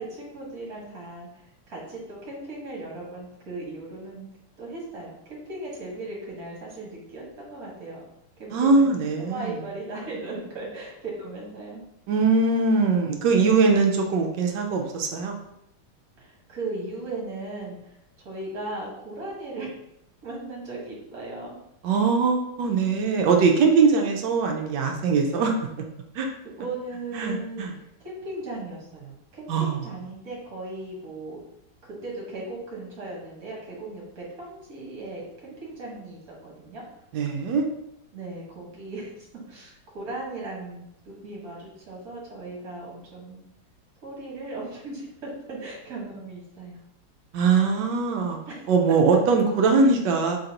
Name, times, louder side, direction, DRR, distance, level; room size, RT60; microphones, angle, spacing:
voice 1, 0.0-4.3 4.6-8.0 8.4-11.8 16.2-17.8 18.2-19.7 20.2-21.6 26.6-27.7 28.0-31.4 31.8-36.8 38.1-40.8 41.2-43.4 44.0-46.8 48.5-48.7, right 2 dB, 50° right, -4 dB, 1.8 m, -37 dB
voice 2, 8.5-9.6 12.1-15.3 21.8-25.5 26.1-26.3 27.1-27.7 29.5-29.8 37.1-37.6 47.3-48.4 48.7-50.4, right 4 dB, 70° right, 2 dB, 1.2 m, -21 dB
3.9 x 3.8 x 2.9 m, 0.83 s
omnidirectional pair, 2.2 m